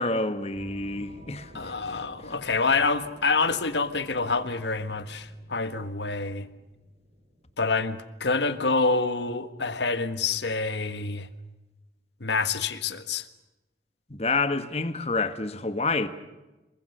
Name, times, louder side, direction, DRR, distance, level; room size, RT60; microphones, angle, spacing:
voice 1, 0.0-1.9 2.2-2.3 14.1-16.1, left 3 dB, 35° left, 1.5 m, -28 dB
sound 1, 0.5-8.8, equal, 40° right, 5.5 m, -51 dB
voice 2, 1.5-6.5 7.6-11.3 12.2-13.3, left 4 dB, 80° left, 1.6 m, -27 dB
27.0 x 24.0 x 6.8 m
head